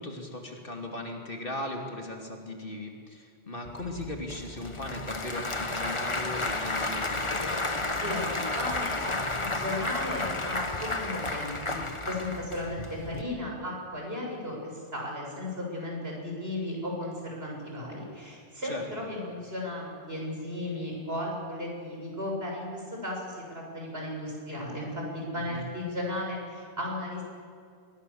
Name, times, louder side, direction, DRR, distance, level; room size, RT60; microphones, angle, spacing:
voice 1, 0.0-7.5 18.6-18.8 25.5-25.6, left 1 dB, 50° left, 1 dB, 3.0 m, -38 dB
Applause / Crowd, 3.6-13.2, left 2 dB, 25° left, 1.4 m, -32 dB
voice 2, 8.0-23.4 23.7-27.2, left 1 dB, 60° right, -1 dB, 7.2 m, -35 dB
25.5 x 22.0 x 7.2 m, 2.2 s
omnidirectional pair, 1.2 m